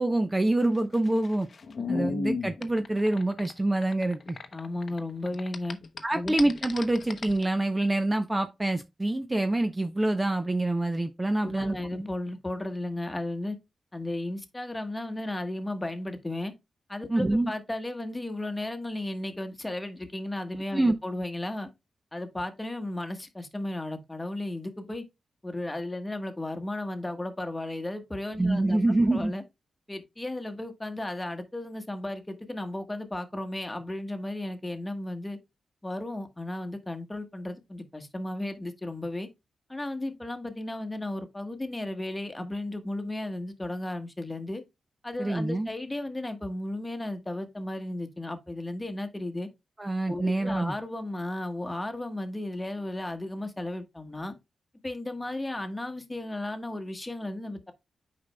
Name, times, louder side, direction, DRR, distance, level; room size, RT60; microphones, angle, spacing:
voice 1, 0.0-1.5 1.9-4.4 6.0-11.8 17.1-17.5 20.7-20.9 28.4-29.3 45.2-45.7 49.8-50.7, right 2 dB, 20° right, 0.7 m, -26 dB
sound 1, 0.6-5.0 5.3-7.4, left 4 dB, 60° left, 0.7 m, -35 dB
voice 2, 4.5-5.8 6.1-6.4 11.4-13.6 13.9-16.5 16.9-21.7 22.1-25.0 25.4-28.8 29.1-29.4 29.9-35.4 35.8-39.3 39.7-44.6 45.0-49.5 50.1-54.3 54.8-57.7, left 1 dB, 15° left, 1.3 m, -34 dB
8.5 x 5.3 x 2.2 m
cardioid pair, 65°, 0 cm